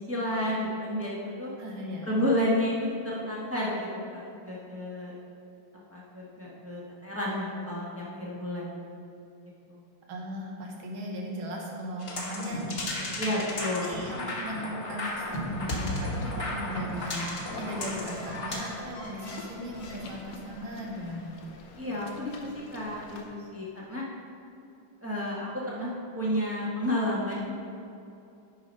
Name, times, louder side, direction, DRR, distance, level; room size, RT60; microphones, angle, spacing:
voice 1, 0.1-1.5 2.0-5.1 5.9-8.9 9.7-9.8 13.2-14.0 21.8-24.0 25.0-27.4, left 1 dB, 10° right, -6 dB, 0.9 m, -31 dB
voice 2, 1.6-2.1 10.1-13.1 13.8-21.3, equal, 70° right, -1 dB, 2.0 m, -38 dB
sound 1, 12.0-18.6, left 1 dB, 35° left, 1.1 m, -34 dB
sound 2, 15.1-23.2, left 3 dB, 60° left, 1.0 m, -47 dB
Squeak, 16.6-20.7, left 2 dB, 80° left, 2.6 m, -46 dB
9.5 x 5.0 x 5.3 m, 2.7 s
omnidirectional pair, 2.4 m